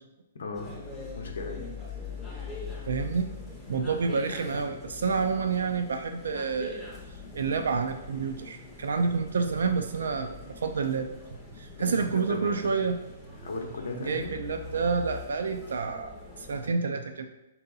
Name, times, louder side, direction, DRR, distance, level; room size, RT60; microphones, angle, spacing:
voice 1, 0.4-0.8 1.1-1.6 11.7-12.7 13.4-14.4, left 3 dB, 80° left, 1 dB, 0.7 m, -36 dB
sound 1, 0.5-16.7, left 4 dB, 5° left, 0.5 m, -43 dB
voice 2, 2.9-3.3 3.7-6.9 7.3-11.1 11.6-13.0 14.0-17.3, right 5 dB, 85° right, 6 dB, 0.3 m, -29 dB
4.5 x 2.8 x 3.9 m, 0.95 s
hypercardioid pair, 175°, 0 cm